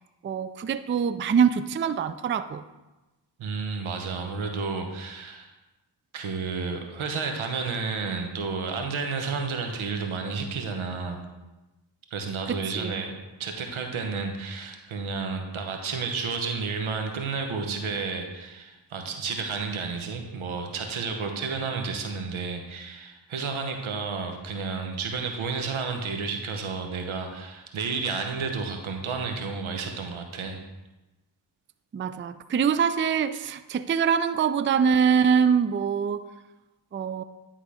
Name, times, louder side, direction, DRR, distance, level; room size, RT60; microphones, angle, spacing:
voice 1, 0.2-2.6 12.5-13.0 31.9-36.3 36.9-37.2, right 7 dB, 25° right, 13 dB, 0.4 m, -24 dB
voice 2, 3.4-5.5 6.1-11.2 12.1-30.6, right 4 dB, 85° right, 4 dB, 1.1 m, -31 dB
10.5 x 3.9 x 4.9 m, 1.1 s
cardioid pair, 45°, 47 cm